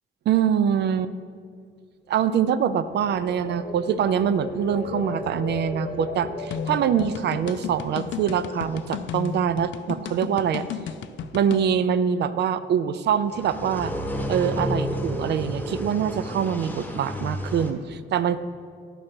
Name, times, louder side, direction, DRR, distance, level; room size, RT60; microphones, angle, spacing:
voice 1, 0.3-1.1 2.1-10.7 11.3-13.9 14.3-18.4, right 8 dB, 60° right, 13 dB, 0.4 m, -24 dB
sound 1, 2.3-9.4 9.8-10.2, left 3 dB, 50° left, 0.9 m, -36 dB
sound 2, 6.5-11.7, left 8 dB, 75° left, 0.4 m, -33 dB
sound 3, 13.3-17.7, equal, 10° left, 1.1 m, -31 dB
11.0 x 5.0 x 4.4 m, 2.1 s
cardioid pair, 115°, 20 cm